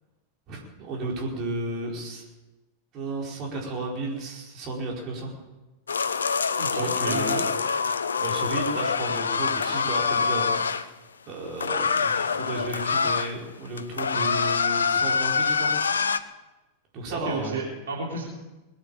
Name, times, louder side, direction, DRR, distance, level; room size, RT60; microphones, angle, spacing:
voice 1, 0.5-2.2 2.9-5.3 6.1-7.4 8.2-10.5 10.8-10.9 11.3-15.7 16.9-17.5, right 2 dB, 35° right, -1 dB, 4.8 m, -33 dB
sound 1, 5.9-10.8 11.6-13.3 13.7-16.2, left 5 dB, 70° left, 0.7 m, -25 dB
voice 2, 6.6-7.5 14.1-14.4 17.1-18.2, right 4 dB, 65° right, -3 dB, 3.5 m, -32 dB
22.0 x 8.9 x 7.3 m, 1.1 s
figure-of-eight pair, 90°, 0 cm